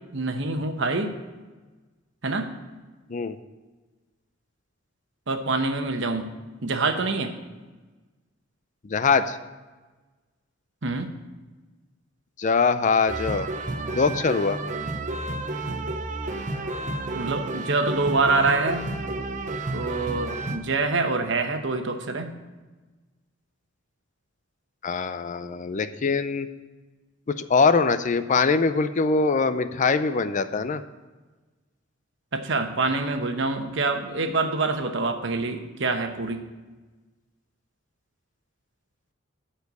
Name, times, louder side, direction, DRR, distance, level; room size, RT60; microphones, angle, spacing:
voice 1, 0.1-1.2 2.2-2.5 5.3-6.3 6.6-7.3 10.8-11.1 17.1-18.9 19.7-22.3 32.3-36.4, right 3 dB, 70° right, 6 dB, 1.0 m, -26 dB
voice 2, 8.8-9.4 12.4-13.5 13.9-14.6 24.8-26.5 27.3-30.8, left 4 dB, 40° left, 12 dB, 0.5 m, -23 dB
sound 1, 13.1-20.6, right 2 dB, 40° right, 0.7 m, -31 dB
12.0 x 4.5 x 8.1 m, 1.3 s
head